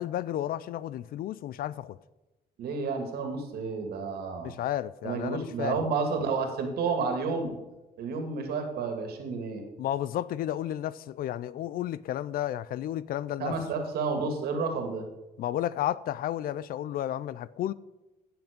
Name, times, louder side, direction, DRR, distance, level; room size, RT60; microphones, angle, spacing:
voice 1, 0.0-2.0 4.4-5.8 9.8-13.6 15.4-17.7, left 12 dB, 60° left, 0.5 m, -32 dB
voice 2, 2.6-4.5 5.0-7.5 8.0-9.6 13.4-15.0, right 4 dB, 70° right, 2.3 m, -30 dB
16.0 x 6.1 x 5.2 m
cardioid pair, 110°, 17 cm